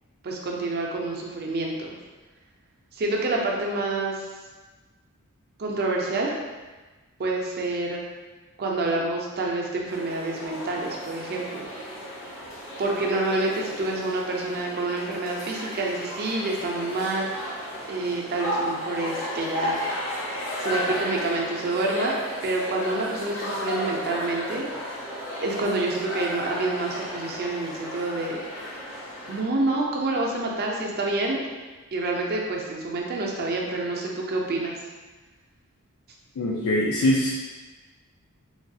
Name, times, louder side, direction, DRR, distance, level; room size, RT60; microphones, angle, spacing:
voice 1, 0.2-1.9 2.9-4.2 5.6-6.3 7.2-8.1 8.6-11.7 12.8-17.5 17.9-19.8 20.6-22.2 22.4-25.0 25.4-28.8 29.3-31.4 31.9-34.8, right 2 dB, 45° right, -1 dB, 0.5 m, -28 dB
sound 1, 9.9-29.4, equal, 60° left, 0.8 m, -34 dB
voice 2, 36.4-37.3, left 1 dB, 80° left, -6 dB, 0.4 m, -22 dB
3.2 x 2.3 x 2.7 m, 1.3 s
head